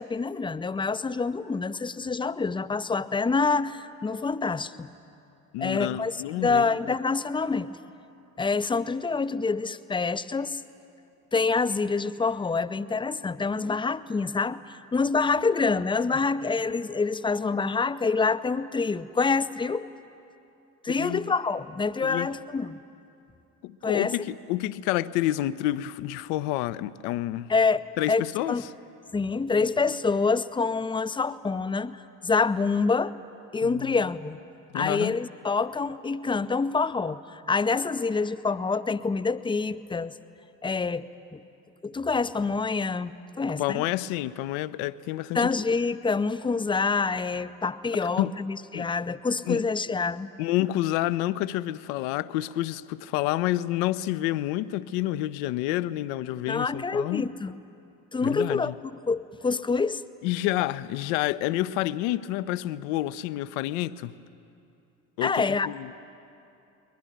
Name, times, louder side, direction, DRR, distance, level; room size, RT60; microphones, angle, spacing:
voice 1, 0.0-4.9 5.6-7.7 8.4-10.6 11.3-19.9 20.8-22.8 23.8-24.1 27.5-28.6 29.1-33.2 33.5-34.4 34.7-40.1 40.6-41.4 41.8-43.1 43.4-43.8 45.3-50.3 56.5-57.5 58.1-58.7 59.1-60.0 65.2-65.7, left 4 dB, 10° left, 0.6 m, -26 dB
voice 2, 5.5-6.8 20.9-21.3 22.0-22.3 23.6-27.5 28.0-28.6 33.6-33.9 34.7-35.1 43.6-45.5 48.0-48.3 48.7-48.9 49.4-49.6 50.4-57.3 58.2-58.7 60.2-64.1 65.2-66.0, left 15 dB, 60° left, 0.7 m, -29 dB
22.0 x 21.0 x 9.3 m
figure-of-eight pair, 55°, 45 cm